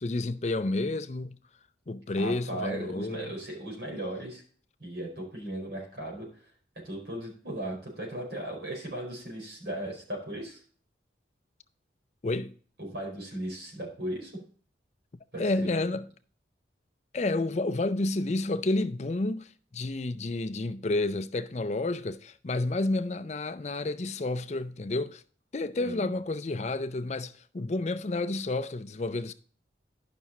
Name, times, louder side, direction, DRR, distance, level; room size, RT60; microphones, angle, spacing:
voice 1, 0.0-1.4 1.9-3.3 12.2-12.5 15.4-16.1 17.1-25.2 25.5-29.3, left 2 dB, 35° left, 0.5 m, -30 dB
voice 2, 2.1-4.4 4.8-6.3 6.8-10.6 12.8-14.3 15.3-15.7 25.8-26.1, right 1 dB, 60° right, 4.7 m, -37 dB
11.0 x 6.0 x 4.1 m
head